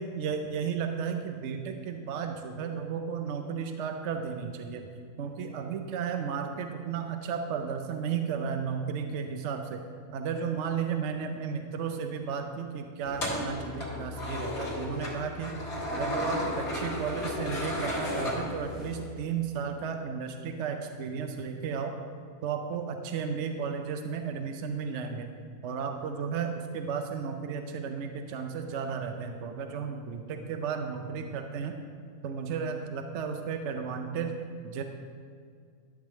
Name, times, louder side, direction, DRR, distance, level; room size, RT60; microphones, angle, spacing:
voice 1, 0.0-4.9 5.2-9.8 10.1-15.6 15.9-22.0 22.4-25.3 25.6-31.8 32.2-34.4 34.6-34.8, right 6 dB, 65° right, 5 dB, 0.8 m, -34 dB
sound 1, 13.0-19.1, left 1 dB, 85° left, 2.4 m, -33 dB
11.5 x 7.6 x 3.5 m, 2.1 s
omnidirectional pair, 1.5 m